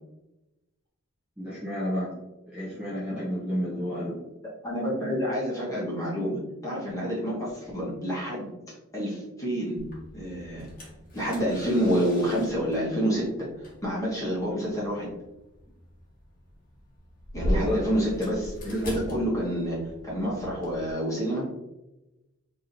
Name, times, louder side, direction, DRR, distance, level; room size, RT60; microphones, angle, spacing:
voice 1, 1.4-2.1 2.5-4.2 17.3-17.8, equal, 5° right, -9 dB, 0.9 m, -30 dB
voice 2, 4.6-8.5 8.9-9.8 10.1-10.7 11.1-13.5 13.8-15.1 17.3-19.8 20.0-21.4, equal, 15° left, -6 dB, 1.3 m, -28 dB
sound 1, 9.8-20.9, equal, 40° left, 1.2 m, -38 dB
4.6 x 3.0 x 2.6 m, 0.98 s
head